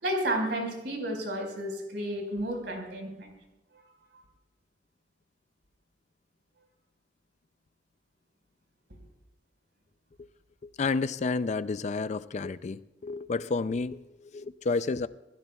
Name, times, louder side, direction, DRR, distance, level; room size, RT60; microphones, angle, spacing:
voice 1, 0.0-3.3, right 1 dB, 65° right, 2 dB, 4.9 m, -32 dB
voice 2, 10.6-15.1, left 4 dB, 40° left, 14 dB, 0.4 m, -31 dB
27.0 x 16.5 x 2.3 m, 0.99 s
head